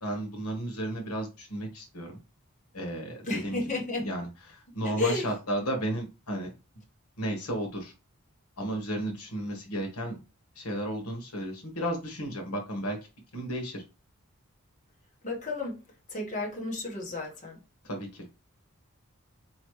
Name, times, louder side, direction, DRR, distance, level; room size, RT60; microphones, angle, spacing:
voice 1, 0.0-2.2 2.7-3.6 4.0-6.5 7.2-7.9 8.6-10.2 10.6-13.0 13.3-13.8 17.8-18.3, right 1 dB, 80° left, 1.3 m, -33 dB
voice 2, 3.2-4.1 4.8-5.3 15.2-15.8 16.1-17.6, left 2 dB, 35° left, 1.2 m, -32 dB
4.2 x 3.1 x 3.1 m
head